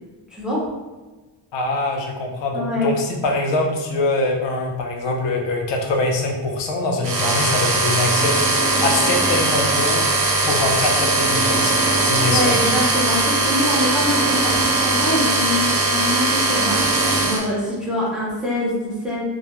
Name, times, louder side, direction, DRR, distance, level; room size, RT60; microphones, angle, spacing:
voice 1, 0.3-0.6 2.5-2.9 12.3-14.6 14.8-16.8 17.2-19.2, left 1 dB, ahead, -7 dB, 0.5 m, -24 dB
voice 2, 1.5-8.5 8.8-10.1 10.5-12.6, left 2 dB, 75° left, 1 dB, 0.6 m, -23 dB
sound 1, 7.0-17.4, right 2 dB, 55° right, 0.6 m, -19 dB
2.3 x 2.1 x 2.9 m, 1.2 s
wide cardioid pair, 165°, 44 cm